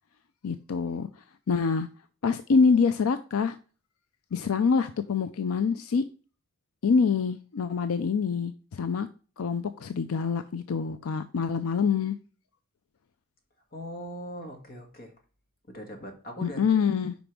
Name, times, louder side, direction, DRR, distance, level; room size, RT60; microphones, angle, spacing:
voice 1, 0.4-1.1 1.5-1.9 2.2-3.6 4.3-6.0 6.8-9.1 9.4-12.2 16.4-17.2, left 5 dB, 80° left, 11 dB, 0.5 m, -25 dB
voice 2, 13.7-15.1 15.7-16.6, equal, 45° left, 4 dB, 1.7 m, -40 dB
5.2 x 5.1 x 6.0 m, 0.37 s
head